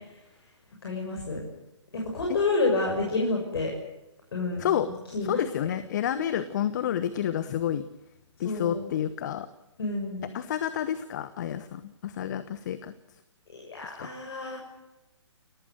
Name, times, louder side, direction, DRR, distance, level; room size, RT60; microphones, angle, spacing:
voice 1, 0.8-1.4 1.9-3.7 4.3-4.7 5.1-5.4 6.1-6.3 8.4-8.8 9.8-10.3 13.5-14.6, left 3 dB, 55° left, 0 dB, 6.6 m, -29 dB
voice 2, 4.6-4.9 5.2-7.8 8.4-9.5 10.3-12.9 13.8-14.1, left 10 dB, 40° left, 14 dB, 1.2 m, -29 dB
29.5 x 15.0 x 9.2 m, 0.96 s
figure-of-eight pair, 130°, 16 cm